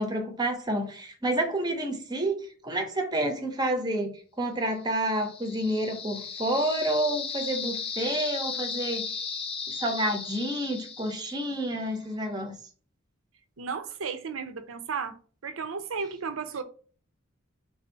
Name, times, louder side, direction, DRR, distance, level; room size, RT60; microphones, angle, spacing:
voice 1, 0.0-9.1 9.7-12.5, right 1 dB, 20° right, 0.6 m, -29 dB
sound 1, 4.9-11.8, left 5 dB, 25° left, 0.4 m, -36 dB
voice 2, 13.6-15.2 15.4-16.6, right 5 dB, 65° right, 0.6 m, -34 dB
3.4 x 2.6 x 4.4 m
head